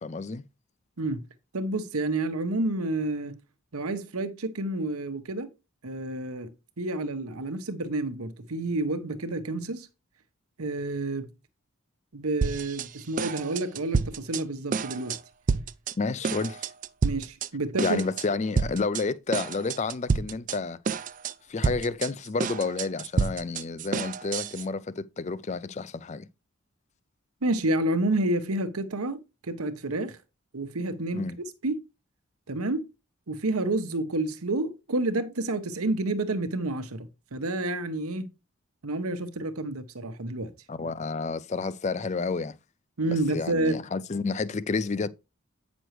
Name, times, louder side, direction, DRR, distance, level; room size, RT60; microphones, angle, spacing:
voice 1, 0.0-0.4 16.0-16.7 17.8-20.8 21.5-26.3 31.1-31.4 40.7-42.5 43.1-45.1, left 4 dB, 30° left, 0.4 m, -30 dB
voice 2, 1.5-3.3 3.7-5.5 5.8-6.5 6.8-9.9 10.6-11.3 12.1-15.2 17.0-18.0 27.4-30.2 30.5-31.3 31.6-31.8 32.5-32.9 33.3-38.3 38.8-40.5 43.0-43.8, right 2 dB, 85° right, 1.0 m, -29 dB
sound 1, 12.4-12.9 13.2-14.4 14.7-15.2 15.5-15.9 16.2-17.5 17.8-18.2 18.6-19.0 19.3-20.6 20.8-21.3 21.6-24.6, right 5 dB, 35° right, 0.3 m, -29 dB
9.0 x 6.2 x 3.2 m
head